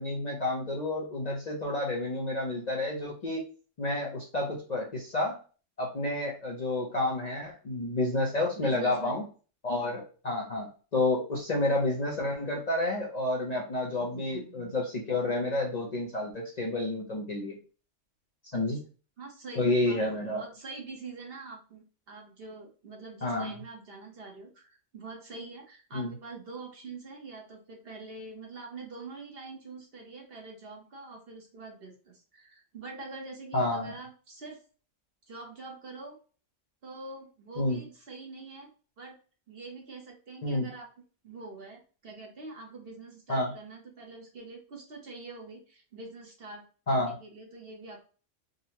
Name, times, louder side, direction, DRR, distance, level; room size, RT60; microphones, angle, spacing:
voice 1, 0.0-3.5 3.8-5.4 5.8-9.2 9.6-17.6 18.5-18.8 19.5-20.4 23.2-23.5 25.9-26.1 33.5-33.9 37.6-37.8 40.4-40.7 43.3-43.5 46.9-47.1, left 2 dB, 45° left, -2 dB, 0.6 m, -30 dB
voice 2, 8.6-9.2 14.0-14.8 18.5-18.8 19.2-34.6 35.3-36.2 36.8-38.7 39.0-39.2 39.5-40.9 41.2-48.0, right 3 dB, 55° right, 1 dB, 1.0 m, -45 dB
3.7 x 2.1 x 2.8 m, 0.37 s
omnidirectional pair, 1.3 m